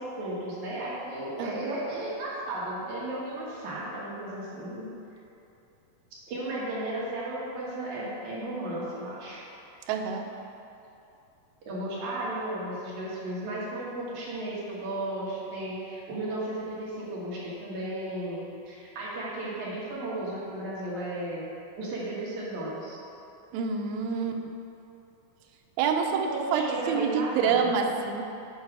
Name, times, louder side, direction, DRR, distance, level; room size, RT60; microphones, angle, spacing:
voice 1, 0.0-4.9 6.3-9.4 11.6-21.4 21.8-23.0 26.1-27.7, right 1 dB, 60° right, -7 dB, 2.4 m, -34 dB
voice 2, 9.9-10.3 23.5-24.5 25.8-28.2, right 6 dB, 85° right, 3 dB, 2.5 m, -27 dB
8.8 x 4.6 x 4.7 m, 2.8 s
omnidirectional pair, 4.3 m